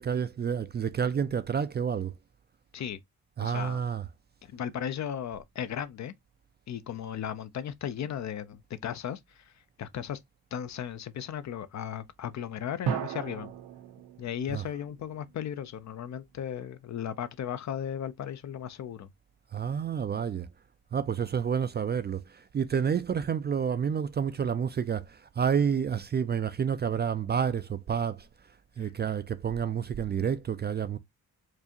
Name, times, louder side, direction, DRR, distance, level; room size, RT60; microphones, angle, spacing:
voice 1, 0.0-2.1 3.4-4.1 14.5-14.6 19.5-20.5 20.9-28.3 28.8-31.0, right 7 dB, 30° right, 0.4 m, -29 dB
voice 2, 3.4-3.8 4.4-6.1 6.7-10.2 10.5-13.5 14.2-19.1 28.8-28.9, left 9 dB, 50° left, 0.5 m, -36 dB
sound 1, 12.8-15.6, right 8 dB, 85° right, 1.0 m, -36 dB
4.7 x 2.4 x 2.8 m
cardioid pair, 90°, 36 cm